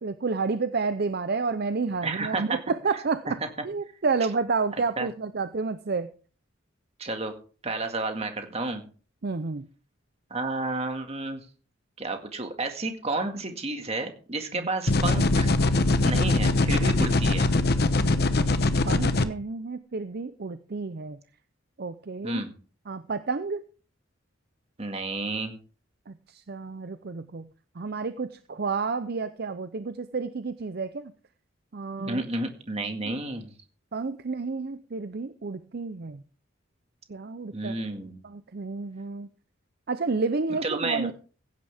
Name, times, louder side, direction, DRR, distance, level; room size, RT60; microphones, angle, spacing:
voice 1, 0.0-3.4 3.6-6.1 9.2-9.7 14.5-14.7 18.8-21.2 21.8-22.4 22.9-23.6 26.1-27.5 27.8-31.1 31.7-32.2 33.0-33.1 33.9-36.2 37.1-37.8 38.2-39.3 39.9-41.1, right 4 dB, 50° right, 11 dB, 0.6 m, -30 dB
voice 2, 2.0-2.6 2.9-3.5 5.0-5.1 7.0-7.3 7.6-8.8 10.3-11.5 12.0-15.5 16.0-17.5 22.2-22.5 24.8-25.6 32.0-33.5 37.5-38.2 40.6-41.1, right 2 dB, 30° right, 5 dB, 2.0 m, -31 dB
sound 1, 14.9-19.2, left 2 dB, 55° left, 1.0 m, -22 dB
16.0 x 10.5 x 3.5 m, 0.40 s
head